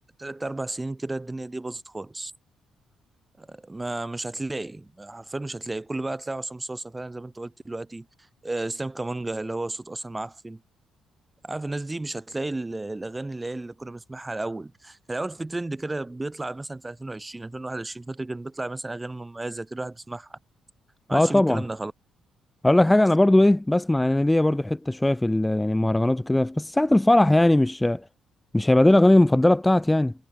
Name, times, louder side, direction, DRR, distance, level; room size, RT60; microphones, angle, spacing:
voice 1, 0.2-2.3 3.4-8.1 8.4-10.6 11.4-20.4 21.1-21.9, right 2 dB, 15° right, 2.9 m, -33 dB
voice 2, 21.1-21.6 22.6-28.0 28.5-30.1, left 1 dB, 10° left, 2.1 m, -19 dB
cardioid pair, 90°, 0 cm